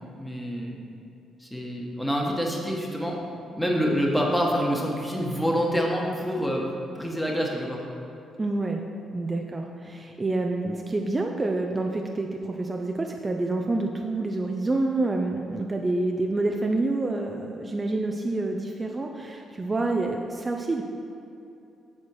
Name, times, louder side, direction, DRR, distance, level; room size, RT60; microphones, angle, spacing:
voice 1, 0.2-0.7 1.4-3.2 3.6-6.7 6.9-7.8, equal, 5° left, -1 dB, 1.3 m, -26 dB
voice 2, 8.4-8.8 9.1-20.8, right 2 dB, 25° right, 2 dB, 0.5 m, -28 dB
7.5 x 4.4 x 6.3 m, 2.7 s
cardioid pair, 90°, 0 cm